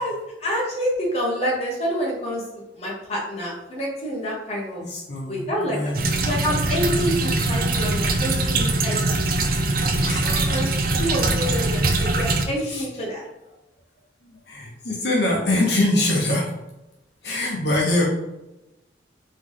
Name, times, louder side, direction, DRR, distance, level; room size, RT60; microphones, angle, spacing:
voice 1, 0.0-4.8 5.3-9.4 10.5-10.7 11.0-13.2, equal, 35° left, -3 dB, 1.1 m, -28 dB
voice 2, 4.8-6.1 6.9-7.0 10.0-10.6 12.6-12.9 14.3-16.5 17.2-18.0, left 1 dB, 65° left, -3 dB, 0.9 m, -24 dB
sound 1, 5.9-12.4, right 2 dB, 50° right, 0.5 m, -22 dB
3.6 x 3.1 x 3.8 m, 0.95 s
head